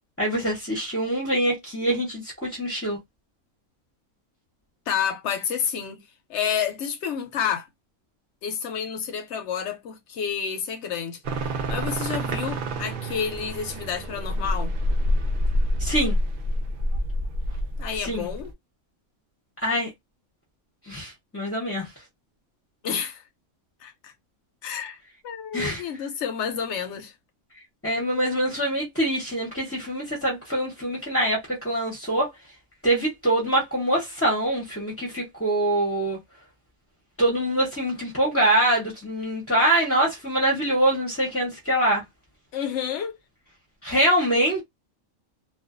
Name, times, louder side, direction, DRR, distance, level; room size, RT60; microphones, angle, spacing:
voice 1, 0.2-3.0 15.8-16.2 18.0-18.3 19.6-19.9 20.9-21.9 25.5-25.8 27.8-32.3 32.8-36.2 37.2-42.0 43.8-44.6, right 1 dB, 15° left, 0.5 m, -24 dB
voice 2, 4.9-6.0 6.3-7.7 8.4-11.2 11.7-14.7 17.8-18.5 22.8-23.2 23.8-24.1 24.6-25.0 25.2-27.1 42.5-43.2, left 7 dB, 65° left, 0.8 m, -29 dB
sound 1, 11.2-18.5, equal, 75° right, 0.5 m, -27 dB
2.4 x 2.2 x 2.4 m
omnidirectional pair, 1.5 m